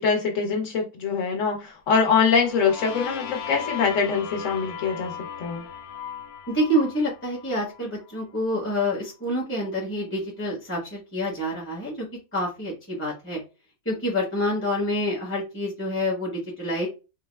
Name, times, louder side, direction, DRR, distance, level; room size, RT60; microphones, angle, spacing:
voice 1, 0.0-5.1 5.4-5.6, left 5 dB, 60° left, 1.2 m, -23 dB
sound 1, 2.0-7.8, left 7 dB, 90° left, 1.2 m, -37 dB
voice 2, 6.5-12.1 12.3-13.4 13.8-16.9, equal, 10° left, 0.8 m, -27 dB
3.9 x 2.2 x 2.2 m
omnidirectional pair, 1.6 m